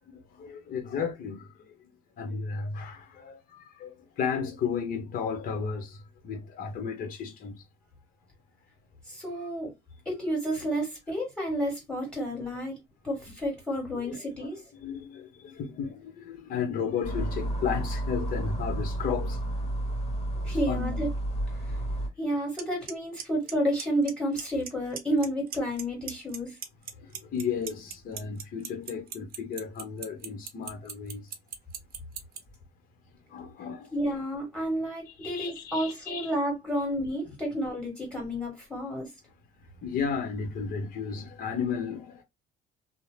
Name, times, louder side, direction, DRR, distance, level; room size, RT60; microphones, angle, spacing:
voice 1, 0.3-1.7 2.2-7.5 14.0-14.5 14.8-19.4 20.4-21.0 27.0-31.3 33.3-33.9 35.2-36.3 39.8-42.2, left 6 dB, 55° left, 0.9 m, -34 dB
voice 2, 9.0-9.7 10.0-12.8 13.0-14.6 20.4-21.1 21.6-21.8 22.2-26.6 33.9-39.1, equal, 5° left, 1.6 m, -31 dB
sound 1, 17.0-22.1, right 1 dB, 40° left, 1.6 m, -31 dB
Clock, 22.6-22.7 22.9-23.2 23.5-24.1 24.4-24.7 25.0-25.8 26.1-32.4, right 9 dB, 60° right, 0.6 m, -36 dB
2.7 x 2.0 x 3.2 m
cardioid pair, 110°, 17 cm